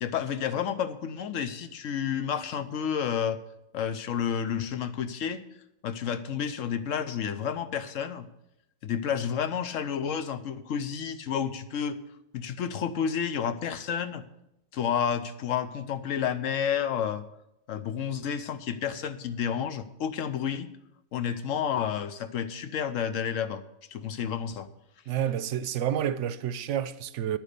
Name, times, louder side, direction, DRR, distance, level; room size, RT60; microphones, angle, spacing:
voice 1, 0.0-3.4 3.7-5.4 5.8-8.3 8.8-12.0 12.3-14.2 14.7-17.2 17.7-20.7 21.1-23.6 23.9-24.7, left 8 dB, 70° left, 1.2 m, -30 dB
voice 2, 25.1-27.4, right 10 dB, 65° right, 0.9 m, -29 dB
10.5 x 9.4 x 6.7 m
omnidirectional pair, 1.4 m